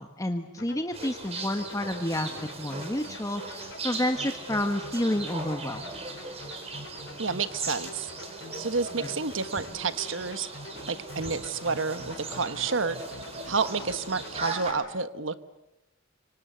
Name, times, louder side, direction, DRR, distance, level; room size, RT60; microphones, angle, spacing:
voice 1, 0.0-5.9, left 1 dB, 15° left, 5 dB, 1.3 m, -30 dB
sound 1, 0.6-14.8, left 1 dB, 75° left, 6.3 m, -45 dB
sound 2, 0.9-14.7, right 3 dB, 35° right, 4.5 m, -39 dB
sound 3, 2.9-4.1 4.5-6.7 9.5-10.0 10.7-11.9 13.2-14.5, left 1 dB, 40° left, 3.8 m, -53 dB
voice 2, 7.2-8.1 8.6-10.5 10.9-13.0 13.5-15.4, right 4 dB, 85° right, 12 dB, 1.3 m, -30 dB
26.0 x 25.5 x 8.2 m, 0.95 s
head